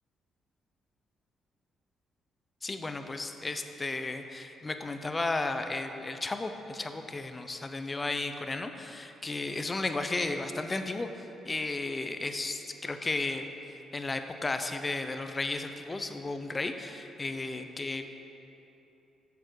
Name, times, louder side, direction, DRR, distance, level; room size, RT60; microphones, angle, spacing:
voice 1, 2.6-11.1 11.4-13.5 13.9-18.1, left 2 dB, 25° left, 7 dB, 0.7 m, -34 dB
14.5 x 7.0 x 4.8 m, 3.0 s
cardioid pair, 90°, 0 cm